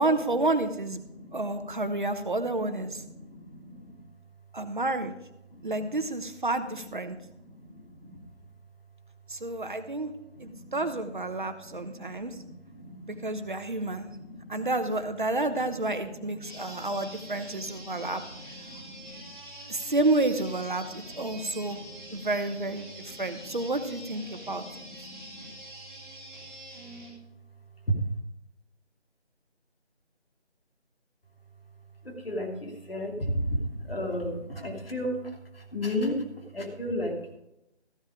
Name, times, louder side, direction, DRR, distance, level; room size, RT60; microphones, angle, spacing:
voice 1, 0.0-1.0 1.3-3.0 4.5-5.1 5.6-7.2 9.3-10.1 10.4-12.4 13.0-14.1 14.5-18.2 19.7-21.8 22.1-24.6, right 2 dB, 45° right, 9 dB, 1.0 m, -30 dB
voice 2, 1.0-1.9 2.3-3.9 5.5-6.1 6.7-6.8 7.1-8.2 10.3-13.4 14.0-15.0 15.5-19.3 20.8-22.3 23.0-23.6 24.2-25.5 27.9-28.0 32.0-37.3, equal, 55° left, 0 dB, 2.8 m, -37 dB
sound 1, 16.4-27.1, right 1 dB, 5° right, 2.0 m, -46 dB
14.5 x 7.3 x 5.0 m, 0.87 s
figure-of-eight pair, 165°, 34 cm